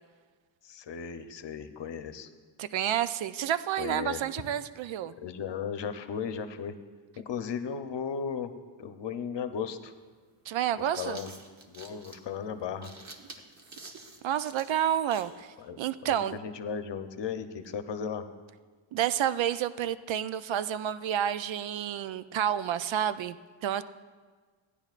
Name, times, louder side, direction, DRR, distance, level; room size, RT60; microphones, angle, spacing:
voice 1, 0.6-2.3 3.8-4.2 5.2-6.8 7.2-8.5 8.8-9.9 10.8-11.3 11.7-12.9 15.6-18.3, left 7 dB, 60° left, 9 dB, 0.8 m, -36 dB
voice 2, 2.6-5.1 10.5-11.2 14.2-16.4 18.9-23.4 23.6-23.8, right 10 dB, 65° right, 13 dB, 0.5 m, -30 dB
sound 1, 9.6-9.7 10.6-15.4, right 3 dB, 35° right, 1.1 m, -48 dB
16.5 x 9.9 x 2.5 m, 1.5 s
cardioid pair, 90°, 49 cm